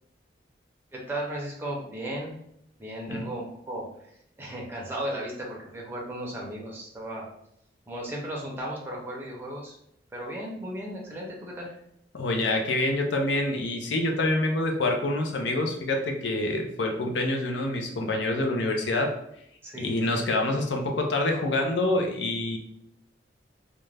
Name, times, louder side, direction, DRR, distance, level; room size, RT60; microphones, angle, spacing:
voice 1, 0.9-2.3 2.8-3.9 4.4-7.2 7.9-9.7 10.1-11.7 19.6-19.9, right 1 dB, 15° right, -2 dB, 0.5 m, -35 dB
voice 2, 12.1-19.2 19.7-22.6, left 2 dB, 75° left, 2 dB, 0.5 m, -26 dB
2.4 x 2.1 x 3.2 m, 0.74 s
head